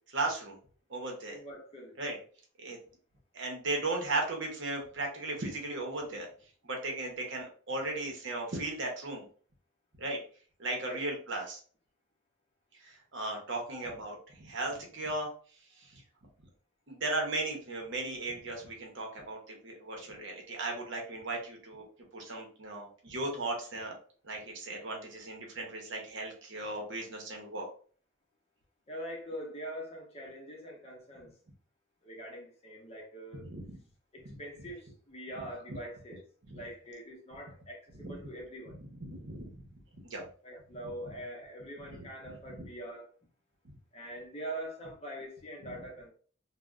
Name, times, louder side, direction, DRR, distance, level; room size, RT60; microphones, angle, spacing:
voice 1, 0.1-0.6 0.9-1.4 2.0-2.2 2.6-2.8 3.3-6.3 6.6-9.3 10.0-10.2 10.6-11.6 12.8-15.3 15.8-16.0 16.9-21.8 22.1-24.0 24.2-27.7 33.4-33.8 36.5-36.6 38.0-38.2 38.7-39.6 40.0-40.2 41.9-42.0 42.5-42.6 45.6-45.7, right 2 dB, 60° right, 0.8 m, -36 dB
voice 2, 1.3-2.0 6.9-7.0 10.8-11.0 28.9-31.3 32.0-33.4 34.1-36.2 36.5-38.8 40.4-43.1 43.9-46.1, right 1 dB, 30° left, 0.6 m, -43 dB
3.2 x 2.1 x 2.4 m
head